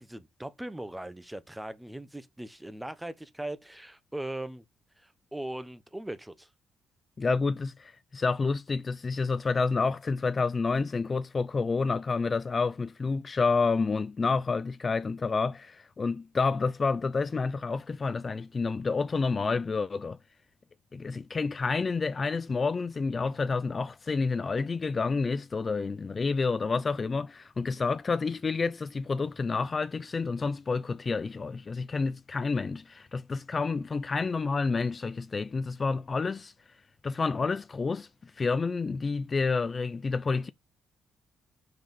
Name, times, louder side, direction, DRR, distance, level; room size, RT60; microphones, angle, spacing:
voice 1, 0.0-4.6 5.0-6.5, right 1 dB, 5° right, 1.1 m, -39 dB
voice 2, 7.2-20.2 20.9-36.5 37.0-40.5, left 4 dB, 35° left, 0.5 m, -29 dB
6.0 x 5.0 x 5.3 m
cardioid pair, 90°, 0 cm